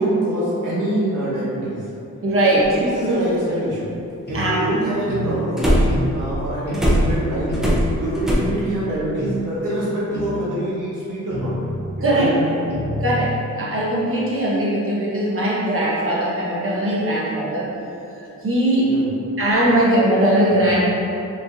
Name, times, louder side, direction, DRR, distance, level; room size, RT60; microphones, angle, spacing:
voice 1, 0.0-1.9 2.5-3.8 4.3-7.6 7.9-11.5 12.0-12.6 18.8-19.2, right 1 dB, 85° right, -9 dB, 1.4 m, -25 dB
voice 2, 2.2-2.7 4.3-4.6 12.0-12.3 13.0-17.7 18.4-19.0 19.4-20.9, right 1 dB, 40° right, -6 dB, 1.1 m, -20 dB
sound 1, 2.6-2.7 5.6-6.1 6.7-8.3, equal, ahead, 0.6 m, -19 dB
sound 2, 4.3-4.5 5.1-5.3 5.9-6.1 6.7-6.9 7.5-7.7 8.3-8.5 9.2-9.4 10.1-10.4 11.3-11.9 12.7-13.4, left 1 dB, 35° left, 1.1 m, -28 dB
5.2 x 2.9 x 2.7 m, 2.8 s
wide cardioid pair, 120°, 32 cm